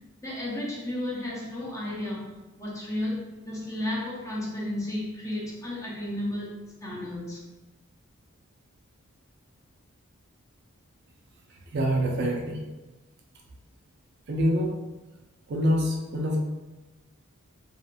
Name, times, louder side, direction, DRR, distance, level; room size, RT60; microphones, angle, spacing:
voice 1, 0.2-2.3 2.5-6.5 6.8-7.4, left 1 dB, 15° left, -6 dB, 0.5 m, -33 dB
voice 2, 11.7-12.6 14.3-14.7 15.5-16.4, equal, 50° right, 0 dB, 0.4 m, -25 dB
2.8 x 2.4 x 2.2 m, 1.1 s
head